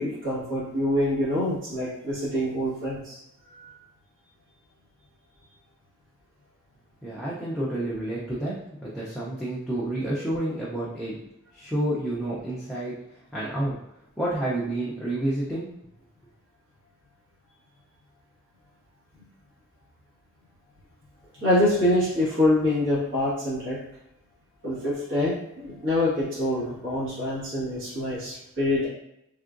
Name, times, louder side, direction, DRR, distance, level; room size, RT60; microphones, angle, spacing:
voice 1, 0.0-3.2 3.4-3.7 21.4-23.8 24.6-28.9, left 1 dB, 60° right, -10 dB, 1.5 m, -25 dB
voice 2, 7.0-11.1 11.5-13.0 13.3-13.8 14.2-15.7, right 1 dB, ahead, -9 dB, 0.5 m, -29 dB
3.6 x 2.4 x 2.5 m, 0.82 s
head